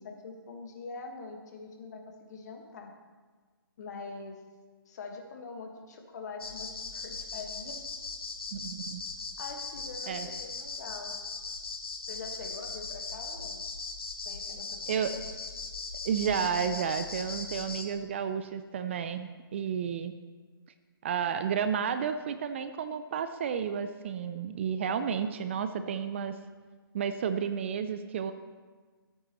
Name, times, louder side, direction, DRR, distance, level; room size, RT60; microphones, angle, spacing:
voice 1, 0.0-2.9 3.8-4.4 4.8-7.8 9.4-11.2 12.1-13.6 14.2-15.2, left 4 dB, 45° left, 3 dB, 1.6 m, -44 dB
sound 1, 6.4-17.8, left 4 dB, 75° left, 1.6 m, -39 dB
voice 2, 8.5-9.0 10.1-10.3 14.9-15.1 16.0-20.1 21.0-26.4 26.9-28.3, right 7 dB, 30° right, 10 dB, 0.4 m, -31 dB
14.5 x 8.9 x 3.1 m, 1.4 s
hypercardioid pair, 150°, 13 cm